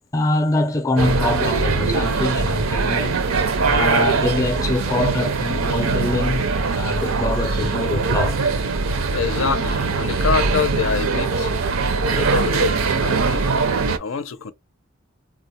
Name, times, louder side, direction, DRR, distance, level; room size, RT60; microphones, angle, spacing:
voice 1, 0.1-3.2 3.6-6.5 6.7-8.4, left 2 dB, 15° left, 0.5 m, -24 dB
sound 1, 1.0-14.0, right 4 dB, 80° right, 0.6 m, -21 dB
voice 2, 9.1-11.5 12.0-13.5 14.0-14.5, left 6 dB, 75° left, 0.5 m, -25 dB
3.6 x 2.1 x 2.7 m
head